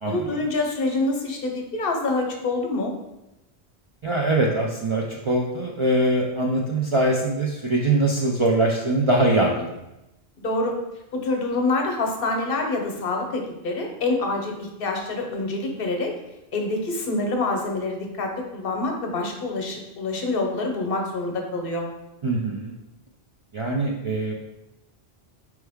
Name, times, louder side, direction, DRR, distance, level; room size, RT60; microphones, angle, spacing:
voice 1, 0.1-2.9 10.4-10.8 11.1-16.1 16.5-21.9, left 2 dB, 65° left, 2 dB, 0.9 m, -26 dB
voice 2, 4.0-9.7 22.2-22.7 23.5-24.3, right 2 dB, 50° right, -2 dB, 0.4 m, -22 dB
4.5 x 3.1 x 3.4 m, 0.94 s
omnidirectional pair, 1.1 m